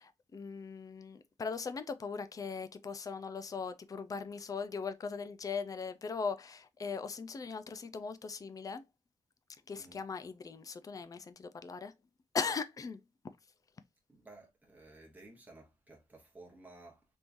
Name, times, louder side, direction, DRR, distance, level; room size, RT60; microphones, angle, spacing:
voice 1, 0.0-8.8 9.7-11.9 12.3-13.0, left 5 dB, 25° left, 0.3 m, -39 dB
voice 2, 14.1-17.0, right 2 dB, 10° right, 1.0 m, -55 dB
3.5 x 3.0 x 2.5 m
wide cardioid pair, 180°, 14 cm